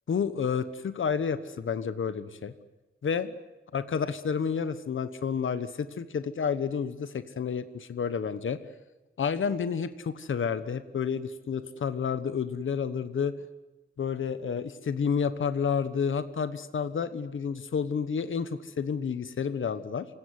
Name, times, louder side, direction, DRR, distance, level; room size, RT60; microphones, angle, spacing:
voice 1, 0.1-2.5 3.0-3.4 3.7-8.6 9.2-13.3 14.0-20.1, left 6 dB, 75° left, 12 dB, 1.3 m, -30 dB
28.0 x 17.5 x 9.7 m, 1.1 s
wide cardioid pair, 165°, 21 cm